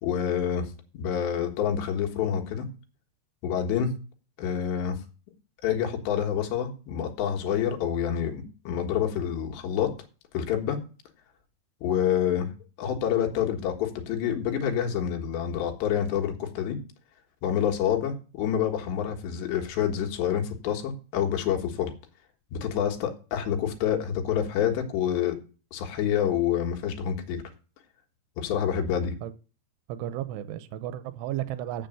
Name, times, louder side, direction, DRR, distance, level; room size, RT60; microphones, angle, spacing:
voice 1, 0.0-2.7 3.4-3.9 4.4-5.0 5.6-9.9 10.3-10.8 11.8-12.5 12.8-16.8 17.4-21.9 22.5-25.4 25.7-27.4 28.4-29.1, left 9 dB, 90° left, 3 dB, 3.7 m, -27 dB
voice 2, 29.9-31.9, right 12 dB, 85° right, 13 dB, 2.8 m, -33 dB
7.8 x 7.0 x 7.7 m, 0.36 s
omnidirectional pair, 4.9 m